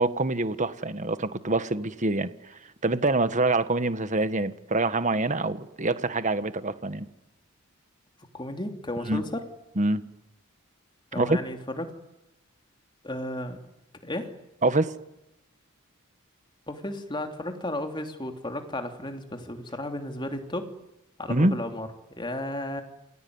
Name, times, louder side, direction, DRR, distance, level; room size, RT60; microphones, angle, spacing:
voice 1, 0.0-7.1 9.1-9.2 9.8-10.0 11.2-11.4 14.6-14.9 21.3-21.5, right 2 dB, 35° right, 12 dB, 1.5 m, -25 dB
voice 2, 8.3-9.4 11.1-11.9 13.0-13.6 14.0-14.3 16.7-20.7 21.2-22.8, left 1 dB, 20° left, 5 dB, 3.1 m, -34 dB
28.5 x 20.5 x 9.6 m, 0.90 s
head